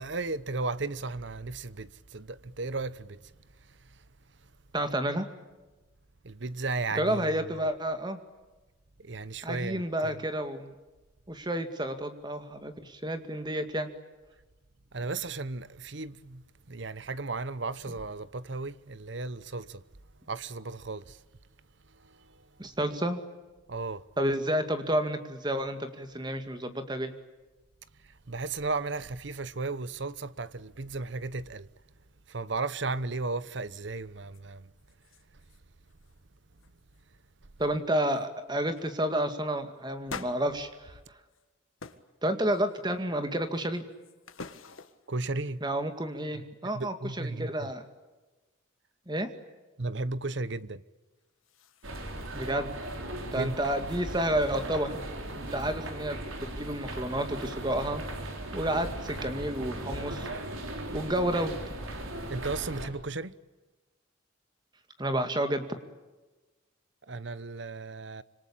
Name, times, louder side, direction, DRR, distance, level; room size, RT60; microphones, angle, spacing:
voice 1, 0.0-3.3 3.6-4.0 6.2-7.6 9.0-10.2 14.9-19.8 20.3-21.2 21.9-22.5 23.7-24.0 28.0-31.7 32.3-34.7 45.1-45.6 46.6-47.7 49.8-50.8 53.3-53.6 62.3-63.4 67.0-68.2, right 3 dB, 60° right, 0.9 m, -35 dB
voice 2, 4.7-5.3 6.9-8.2 9.4-10.7 11.3-13.9 22.6-23.2 24.2-27.1 37.6-41.0 42.2-43.9 45.6-47.8 49.1-49.3 52.3-52.7 53.3-54.9 55.4-58.0 58.5-60.3 60.9-61.5 65.0-65.7, right 1 dB, 20° right, 2.2 m, -30 dB
sound 1, 34.3-34.4 34.8-35.6 35.9-36.2 36.6-37.0 37.6-37.7 38.1-38.3 38.7-38.9 40.1-41.4 41.8-42.1 42.5-43.0 43.5-45.2 51.2-52.5, left 4 dB, 90° left, 1.8 m, -47 dB
sound 2, 51.8-62.9, right 1 dB, 85° right, 3.9 m, -38 dB
26.5 x 25.5 x 8.7 m
head